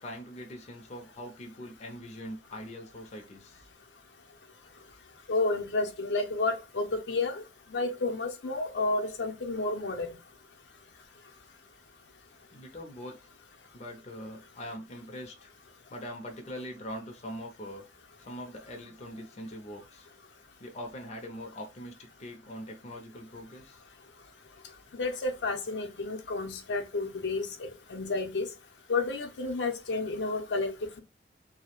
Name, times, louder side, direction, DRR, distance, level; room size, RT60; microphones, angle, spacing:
voice 1, 0.0-3.7 12.5-13.3 13.7-15.5 15.9-17.9 18.2-20.1 20.6-23.8, equal, 40° left, 0.5 m, -42 dB
voice 2, 5.3-7.4 7.7-10.1 24.9-28.5 28.9-31.0, left 3 dB, 85° left, 0.6 m, -31 dB
2.3 x 2.0 x 2.9 m
head